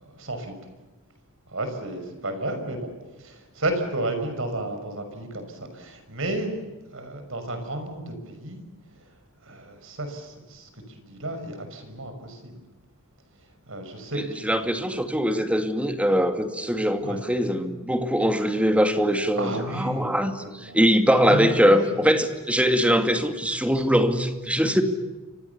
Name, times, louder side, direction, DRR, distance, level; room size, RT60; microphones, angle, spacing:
voice 1, 0.1-0.5 1.5-2.9 3.2-6.5 6.9-8.6 9.0-9.1 9.5-12.6 13.7-14.8 17.0-17.2 19.3-20.2 20.4-20.8 21.3-22.1, right 1 dB, 65° right, 7 dB, 6.1 m, -32 dB
voice 2, 14.2-24.8, equal, 5° right, 7 dB, 2.3 m, -22 dB
30.0 x 25.5 x 7.2 m, 1.2 s
head